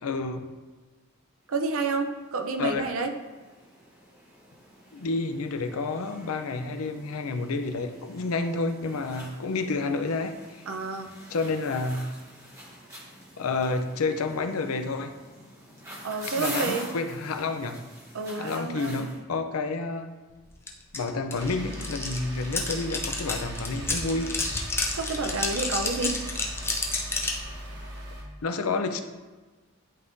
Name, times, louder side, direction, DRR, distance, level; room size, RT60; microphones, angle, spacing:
voice 1, 0.0-0.5 2.6-2.9 4.9-10.6 11.3-12.1 13.4-15.1 16.4-17.8 18.4-20.1 20.9-24.3 28.4-29.0, left 3 dB, 85° left, 7 dB, 0.5 m, -29 dB
voice 2, 1.5-3.1 10.7-11.1 16.0-16.9 18.1-19.1 24.9-26.2, right 3 dB, 75° right, 5 dB, 0.6 m, -29 dB
sound 1, 1.7-1.8 2.0-19.2, equal, 15° right, 1.2 m, -45 dB
sound 2, 20.7-20.8 20.9-27.4, left 3 dB, 10° left, 0.4 m, -30 dB
sound 3, 21.4-28.2, equal, 55° right, 1.3 m, -39 dB
10.5 x 3.6 x 2.6 m, 1.3 s
head